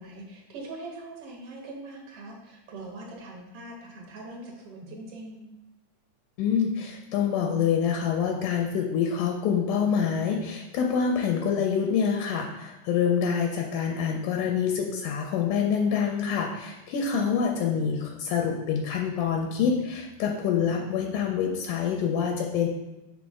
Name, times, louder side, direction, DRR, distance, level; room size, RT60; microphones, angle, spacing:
voice 1, 0.0-5.5 17.1-17.5, right 2 dB, 60° right, 0 dB, 1.7 m, -42 dB
voice 2, 6.4-22.7, left 7 dB, 80° left, 1 dB, 2.1 m, -26 dB
6.0 x 5.1 x 3.6 m, 0.96 s
omnidirectional pair, 3.8 m